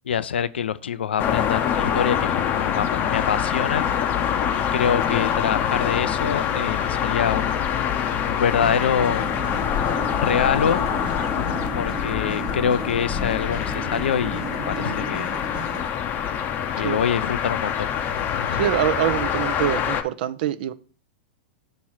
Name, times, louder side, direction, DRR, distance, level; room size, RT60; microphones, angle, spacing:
voice 1, 0.1-3.8 4.5-7.7 8.3-9.3 10.2-10.8 11.7-15.3 16.7-18.7, left 7 dB, 75° left, 0.4 m, -25 dB
sound 1, 1.2-20.0, left 8 dB, 35° left, 0.7 m, -25 dB
sound 2, 8.4-15.9, right 4 dB, 15° right, 0.6 m, -35 dB
voice 2, 18.6-20.7, right 12 dB, 55° right, 0.6 m, -24 dB
6.2 x 3.1 x 5.7 m
hypercardioid pair, 100°, 6 cm